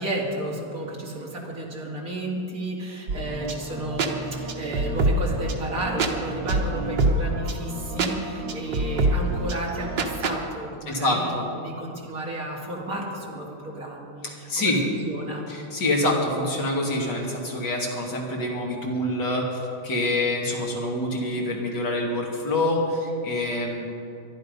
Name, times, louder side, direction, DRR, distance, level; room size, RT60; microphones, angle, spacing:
voice 1, 0.0-15.4 16.1-16.2, right 1 dB, 50° right, -2 dB, 2.8 m, -32 dB
sound 1, 3.1-10.4, right 2 dB, 85° right, 1.9 m, -26 dB
voice 2, 10.9-11.5 14.2-14.8 15.5-23.9, left 1 dB, 75° left, -1 dB, 3.1 m, -26 dB
22.5 x 11.5 x 5.3 m, 2.7 s
omnidirectional pair, 1.9 m